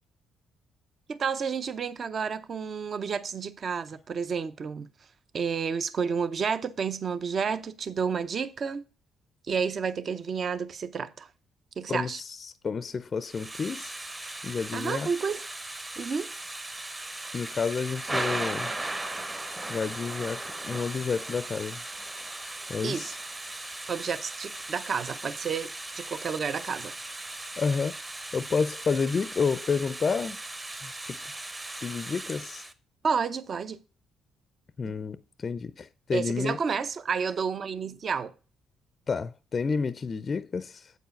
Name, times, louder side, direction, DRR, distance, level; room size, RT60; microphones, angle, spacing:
voice 1, 1.1-4.9 5.3-8.8 9.5-11.3 11.8-12.2 14.7-15.4 16.0-16.3 22.8-23.1 23.9-26.9 33.0-33.8 34.9-35.0 36.1-38.3, right 6 dB, 50° right, 0.6 m, -30 dB
voice 2, 11.9-13.9 14.4-15.1 17.3-18.7 19.7-21.8 22.7-23.2 27.6-27.9 28.3-30.4 30.8-31.2 31.8-32.7 34.8-36.6 39.1-40.9, left 5 dB, 40° left, 0.4 m, -30 dB
Thunder / Rain, 13.2-32.7, right 2 dB, 20° right, 0.9 m, -37 dB
8.0 x 4.7 x 5.2 m
cardioid pair, 80°, 0 cm